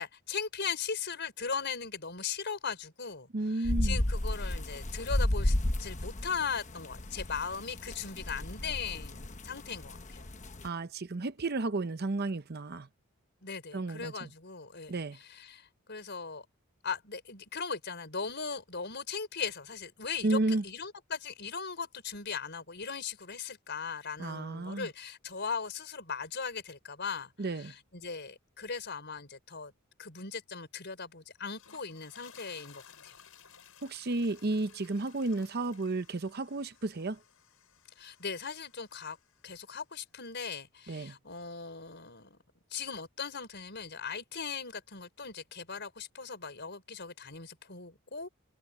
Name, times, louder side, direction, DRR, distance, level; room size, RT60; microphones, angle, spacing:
voice 1, 0.0-10.3 13.4-16.5 16.8-29.7 30.0-33.2 38.0-39.2 39.4-42.4 42.7-48.3, left 5 dB, 50° left, 5.3 m, -39 dB
voice 2, 3.3-4.0 10.6-12.9 13.7-14.3 14.9-15.2 20.2-20.6 24.2-24.9 27.4-27.7 33.8-37.2 40.9-41.2, right 2 dB, 45° right, 0.7 m, -32 dB
sound 1, 3.6-10.7, left 1 dB, 35° left, 1.1 m, -33 dB
sound 2, 31.4-39.7, left 8 dB, 70° left, 6.4 m, -58 dB
head